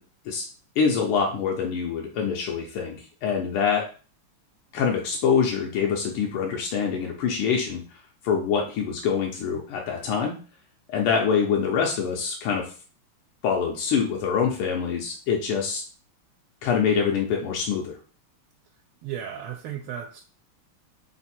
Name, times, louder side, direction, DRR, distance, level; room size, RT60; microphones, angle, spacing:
voice 1, 0.8-3.9 4.7-7.8 8.2-10.4 10.9-12.7 13.4-15.8 16.6-18.0, left 6 dB, 90° left, 0 dB, 1.6 m, -25 dB
voice 2, 19.0-20.2, right 9 dB, 85° right, 3 dB, 1.4 m, -34 dB
3.9 x 2.6 x 4.2 m, 0.37 s
omnidirectional pair, 2.3 m